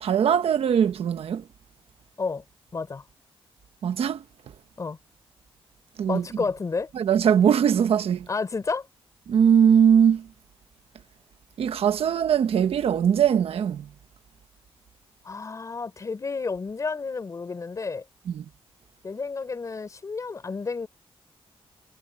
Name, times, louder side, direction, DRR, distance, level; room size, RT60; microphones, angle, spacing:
voice 1, 0.0-1.4 3.8-4.2 6.0-6.2 6.9-8.3 9.3-10.3 11.6-13.9 18.3-18.4, right 8 dB, 80° right, 1.3 m, -21 dB
voice 2, 2.7-3.0 4.8-5.0 6.1-6.9 8.3-8.9 15.2-18.0 19.0-20.9, left 4 dB, 35° left, 3.9 m, -31 dB
wide cardioid pair, 155°, 10 cm